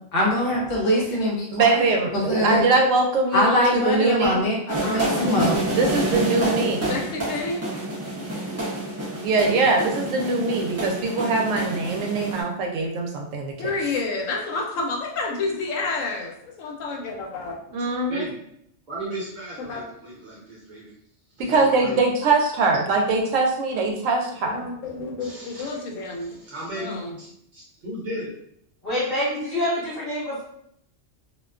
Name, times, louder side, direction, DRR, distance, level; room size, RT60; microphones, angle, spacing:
voice 1, 0.1-1.9 2.3-2.6 3.3-5.6, left 1 dB, 55° left, -3 dB, 0.9 m, -23 dB
voice 2, 1.5-4.4 5.8-6.9 9.2-13.5 17.7-18.3 21.4-24.6, right 3 dB, 80° right, 1 dB, 0.9 m, -22 dB
sound 1, 4.7-12.4, right 1 dB, 20° right, 0.4 m, -28 dB
voice 3, 4.8-5.8 6.9-7.6 13.6-17.6 19.6-19.8 24.5-26.3 26.8-27.2, left 3 dB, 80° left, 0 dB, 1.0 m, -29 dB
voice 4, 18.1-18.4 18.9-20.9 21.4-22.0 24.4-24.5 25.2-25.8 26.2-28.3, right 1 dB, 40° right, -5 dB, 0.9 m, -36 dB
voice 5, 28.8-30.4, left 1 dB, 35° left, -10 dB, 1.2 m, -26 dB
2.5 x 2.2 x 2.3 m, 0.72 s
omnidirectional pair, 1.3 m